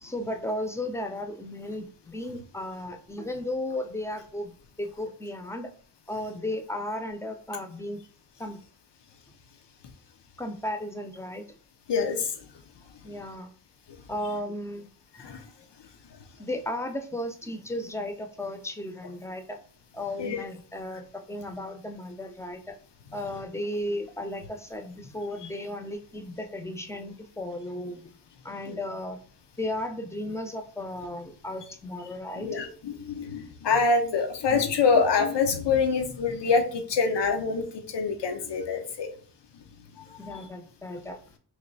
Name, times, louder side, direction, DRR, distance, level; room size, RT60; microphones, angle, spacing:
voice 1, 0.0-5.7 6.1-8.0 8.4-8.6 10.4-11.4 13.0-13.5 14.1-14.9 15.2-15.4 16.4-19.6 19.9-22.8 23.1-28.1 28.4-29.2 29.6-32.5 40.2-41.2, left 1 dB, 5° left, 6 dB, 0.6 m, -35 dB
voice 2, 11.9-12.3 15.2-15.4 20.2-20.4 25.4-25.5 28.7-28.8 32.4-39.1 40.0-40.4, left 4 dB, 85° left, 5 dB, 0.7 m, -26 dB
3.3 x 2.7 x 3.9 m, 0.44 s
cardioid pair, 55°, 41 cm